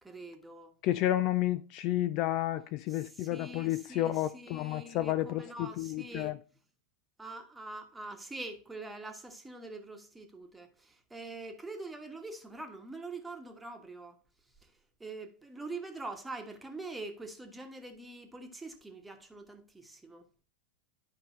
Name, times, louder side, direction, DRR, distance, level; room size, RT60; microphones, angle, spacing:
voice 1, 0.0-0.7 2.9-6.4 7.2-14.2 14.4-20.3, right 2 dB, 10° right, 1.3 m, -44 dB
voice 2, 0.8-6.3, left 14 dB, 40° left, 0.4 m, -31 dB
11.0 x 5.3 x 3.1 m
figure-of-eight pair, 90°, 0 cm